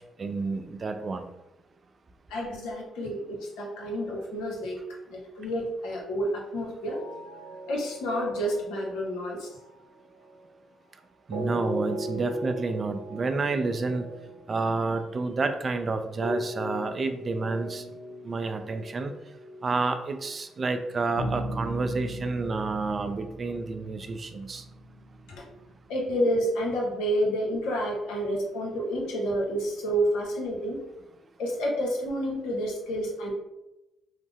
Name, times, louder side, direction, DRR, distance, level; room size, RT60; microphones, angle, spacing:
voice 1, 0.2-1.3 11.3-14.1 14.5-17.8 18.2-19.1 19.6-24.6, right 3 dB, 40° right, 7 dB, 0.3 m, -29 dB
voice 2, 2.3-4.8 5.1-7.1 7.7-9.5 25.3-25.4 25.9-30.9 31.4-33.3, equal, 75° left, -1 dB, 0.7 m, -29 dB
sound 1, 6.9-10.5 11.3-20.3 21.2-25.8, equal, 85° right, 0.7 m, -38 dB
3.1 x 2.0 x 3.4 m, 0.96 s
hypercardioid pair, 45°, 0 cm